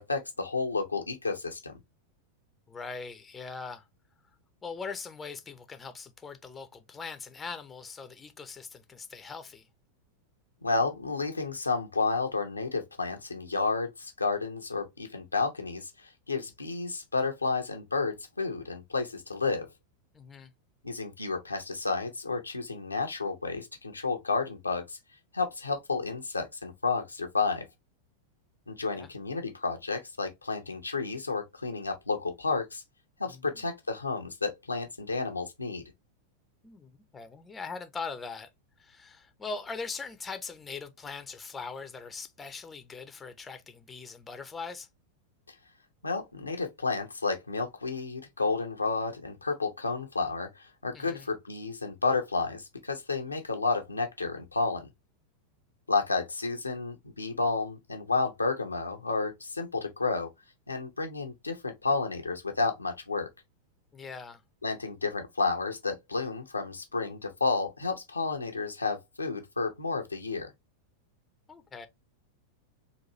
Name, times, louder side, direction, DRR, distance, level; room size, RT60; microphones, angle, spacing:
voice 1, 0.0-1.8 10.6-19.7 20.8-25.0 25.3-27.7 28.7-32.8 33.2-35.8 46.0-54.9 55.9-60.3 60.7-63.3 64.6-70.5, left 3 dB, 80° left, 0.7 m, -31 dB
voice 2, 2.7-3.9 4.6-9.7 20.1-20.5 28.9-29.1 33.3-33.6 36.6-38.5 38.8-44.9 50.9-51.3 63.9-64.4 71.5-71.9, left 4 dB, 15° left, 0.6 m, -41 dB
4.0 x 2.6 x 2.9 m
figure-of-eight pair, 90°, 0 cm